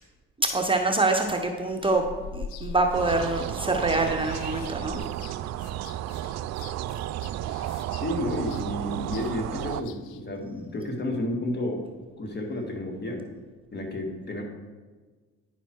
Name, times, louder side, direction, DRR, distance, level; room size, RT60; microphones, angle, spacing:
voice 1, 0.4-2.1 2.3-5.0, right 2 dB, 15° right, 3 dB, 0.8 m, -25 dB
sound 1, 1.8-10.2, left 5 dB, 80° left, 0.6 m, -43 dB
sound 2, 2.9-9.8, right 13 dB, 60° right, 0.4 m, -33 dB
voice 2, 8.0-13.2 13.7-14.4, left 1 dB, 35° left, 2 dB, 1.9 m, -31 dB
10.0 x 5.8 x 4.6 m, 1.4 s
supercardioid pair, 75°, 30 cm